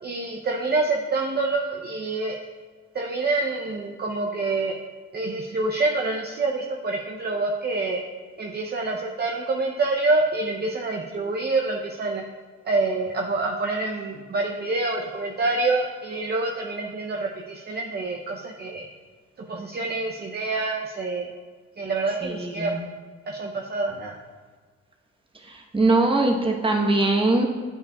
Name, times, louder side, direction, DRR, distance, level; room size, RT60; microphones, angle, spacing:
voice 1, 0.0-2.4 2.9-4.8 5.1-8.0 8.4-12.2 12.6-18.9 19.4-21.3 21.8-22.7 23.3-24.2, right 3 dB, 35° right, 0 dB, 0.6 m, -26 dB
voice 2, 22.1-22.8 25.3-27.4, right 2 dB, 15° right, 1 dB, 1.0 m, -22 dB
9.1 x 5.4 x 2.3 m, 1.5 s
cardioid pair, 90°, 30 cm